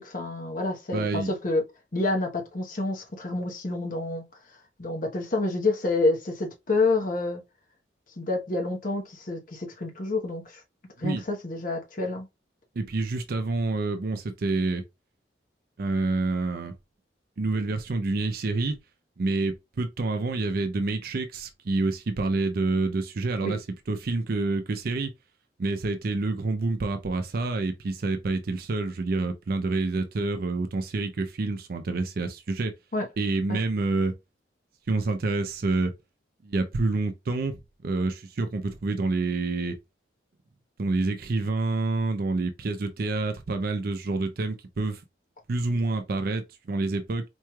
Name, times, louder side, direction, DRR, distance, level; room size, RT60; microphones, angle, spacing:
voice 1, 0.0-1.6 1.9-4.2 4.8-7.4 8.2-10.6 11.0-12.3 23.4-23.6 32.9-33.1 33.5-33.6, left 2 dB, 50° left, 1.0 m, -28 dB
voice 2, 0.9-1.3 11.0-11.2 12.8-14.8 15.8-16.7 17.4-18.8 19.2-23.6 23.9-25.1 25.6-32.7 33.2-34.1 34.9-35.9 36.4-37.6 37.8-39.8 40.8-45.0 45.5-47.2, right 3 dB, 55° right, 0.5 m, -27 dB
4.4 x 3.1 x 2.3 m
head